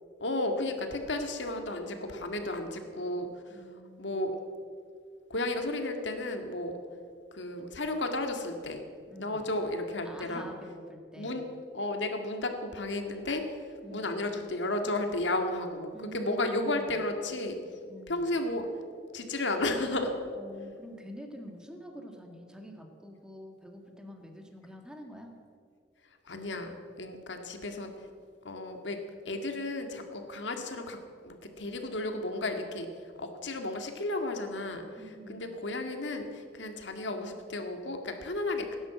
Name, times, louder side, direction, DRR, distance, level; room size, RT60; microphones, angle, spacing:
voice 1, 0.2-3.6 4.0-4.3 5.3-6.7 7.3-8.8 9.2-10.5 11.2-11.5 11.7-13.4 13.9-17.6 18.1-18.7 19.1-20.1 26.3-28.1 28.4-29.0 29.3-31.0 31.2-32.9 33.2-35.0 35.3-38.8, left 2 dB, 75° left, 5 dB, 1.9 m, -33 dB
voice 2, 3.5-4.3 9.1-9.5 10.0-11.5 13.8-14.2 15.9-17.0 17.8-18.3 20.3-25.3 35.0-35.6, equal, 5° right, 3 dB, 1.8 m, -47 dB
17.0 x 10.0 x 7.5 m, 2.2 s
head